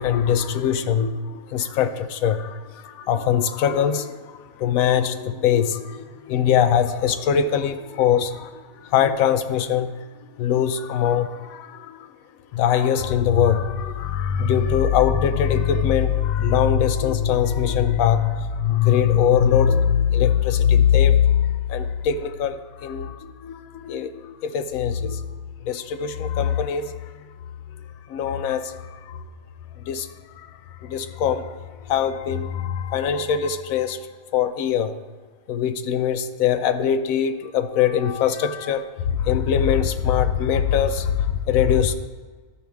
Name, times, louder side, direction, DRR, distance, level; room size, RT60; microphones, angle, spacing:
voice 1, 0.0-4.1 4.6-9.9 10.4-12.1 12.5-25.2 25.6-26.9 28.1-29.2 29.9-30.1 30.4-30.5 30.8-31.5 31.9-34.0 34.3-34.9 35.5-41.9, left 8 dB, 70° left, 9 dB, 1.0 m, -22 dB
13.5 x 4.6 x 3.5 m, 1.4 s
omnidirectional pair, 1.6 m